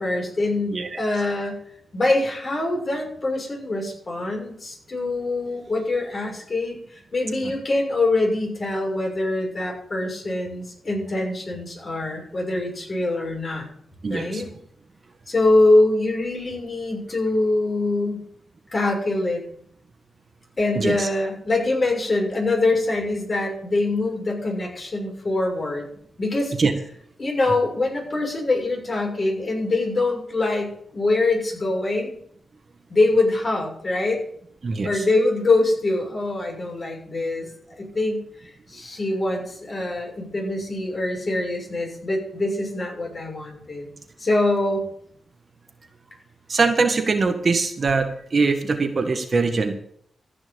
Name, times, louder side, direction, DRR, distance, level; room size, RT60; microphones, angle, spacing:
voice 1, 0.0-1.6 1.9-13.7 14.1-14.5 15.3-18.2 18.7-19.4 20.6-25.9 26.2-26.5 27.2-32.1 32.9-34.2 34.8-38.2 38.7-43.9 44.2-44.9, left 2 dB, 40° left, -1 dB, 6.5 m, -24 dB
voice 2, 14.0-14.4 20.7-21.1 26.6-26.7 34.6-34.9 46.5-49.7, right 4 dB, 50° right, 6 dB, 1.6 m, -22 dB
15.0 x 6.1 x 7.0 m, 0.67 s
cardioid pair, 60°, 0 cm